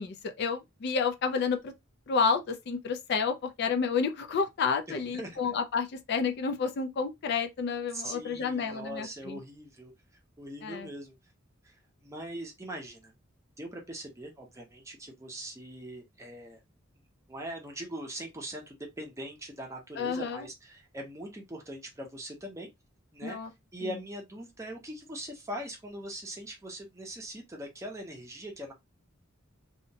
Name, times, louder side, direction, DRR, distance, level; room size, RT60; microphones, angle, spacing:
voice 1, 0.0-1.7 2.1-9.4 10.6-10.9 20.0-20.5 23.2-23.5 23.8-23.9, left 5 dB, 50° left, 0.3 m, -30 dB
voice 2, 4.9-5.4 7.9-9.9 10.4-11.2 11.6-11.8 12.0-13.1 13.6-16.6 17.3-22.7 23.1-23.4 23.7-28.7, right 1 dB, 15° right, 0.6 m, -41 dB
2.7 x 2.1 x 2.7 m
head